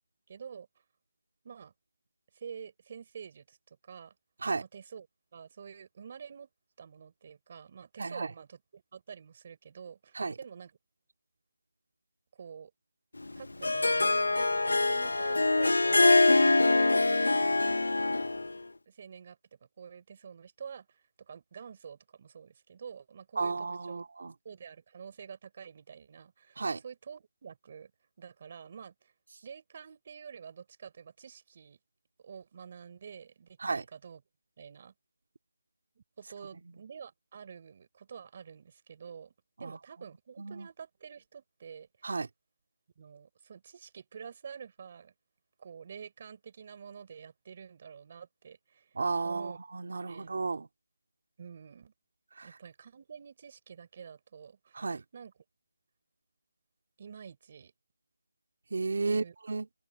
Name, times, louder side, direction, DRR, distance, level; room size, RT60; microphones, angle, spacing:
voice 1, 0.3-0.7 1.4-1.7 2.3-4.1 4.6-5.1 5.3-6.5 6.8-10.8 12.3-12.7 13.4-17.7 18.9-24.1 24.4-27.9 28.2-29.1 29.4-31.8 32.2-34.2 34.6-34.9 36.0-39.3 39.6-42.2 43.0-45.1 45.6-49.0 49.2-49.6 50.1-50.4 51.4-51.9 52.4-54.9 55.1-55.3 57.0-57.7 59.0-59.4, right 7 dB, 25° right, 5.8 m, -48 dB
Harp, 13.2-18.5, left 2 dB, 85° left, 0.8 m, -24 dB
voice 2, 23.4-24.3 26.6-26.8 33.6-33.8 39.6-39.8 40.4-40.7 42.0-42.3 49.0-50.7 52.4-52.5 54.7-55.0 58.7-59.7, right 4 dB, 50° right, 2.9 m, -33 dB
figure-of-eight pair, 175°, 0 cm